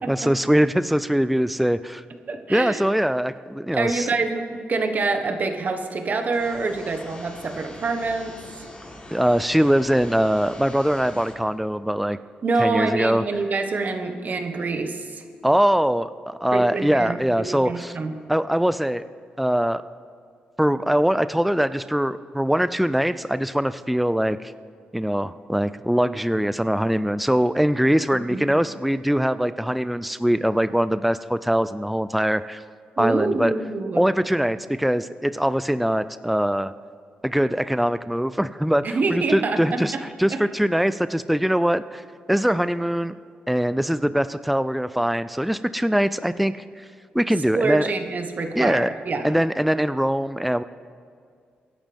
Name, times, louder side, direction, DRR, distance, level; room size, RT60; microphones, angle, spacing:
voice 1, 0.1-2.0 2.5-4.1 9.1-12.2 12.6-13.2 15.4-18.0 18.3-19.0 19.4-19.8 20.6-24.5 24.9-32.6 33.0-33.5 34.0-36.7 37.2-42.0 42.3-43.1 43.5-46.8 47.1-47.9 48.6-48.9 49.2-50.6, equal, ahead, 13 dB, 0.4 m, -22 dB
voice 2, 2.3-2.8 3.7-8.7 12.4-15.2 16.5-18.1 28.3-28.4 33.0-34.0 38.8-40.0 40.3-40.4 47.5-49.3, right 3 dB, 50° right, 6 dB, 1.5 m, -26 dB
sound 1, 6.3-11.3, left 2 dB, 30° left, 3.6 m, -43 dB
24.5 x 11.0 x 3.6 m, 2.1 s
cardioid pair, 75°, 4 cm